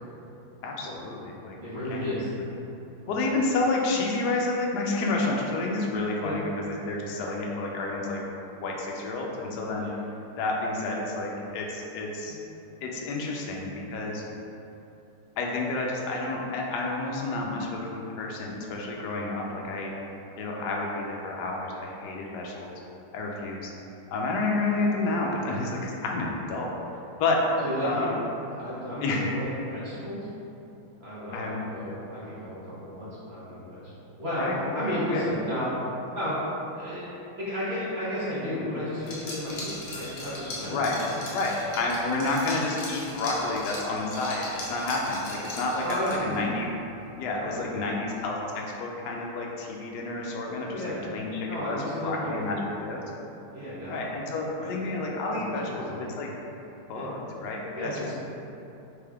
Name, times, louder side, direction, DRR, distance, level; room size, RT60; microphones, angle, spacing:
voice 1, 0.6-2.0 3.1-8.2 8.6-9.9 10.4-12.4 12.8-14.2 15.4-19.9 20.4-22.7 23.1-23.7 24.1-26.7 27.2-27.4 27.8-28.2 29.0-29.3 31.3-31.6 34.4-35.2 40.7-41.0 41.3-46.7 47.2-50.8 51.1-53.0 53.9-56.3 56.9-57.9, left 2 dB, 85° left, -1 dB, 0.9 m, -30 dB
voice 2, 1.6-2.2 3.0-3.5 6.2-6.4 27.6-28.1 28.5-30.3 31.0-33.9 34.2-34.5 34.7-35.7 36.1-36.4 36.7-40.9 41.4-41.5 45.8-46.4 47.4-47.9 50.7-51.1 51.5-52.6 53.5-54.0 54.5-54.7 55.3-56.1 56.9-57.1 57.7-58.1, equal, 50° right, -11 dB, 0.7 m, -33 dB
Liquid, 39.0-46.4, left 2 dB, 70° left, 1.7 m, -39 dB
3.7 x 3.4 x 3.5 m, 2.9 s
omnidirectional pair, 2.4 m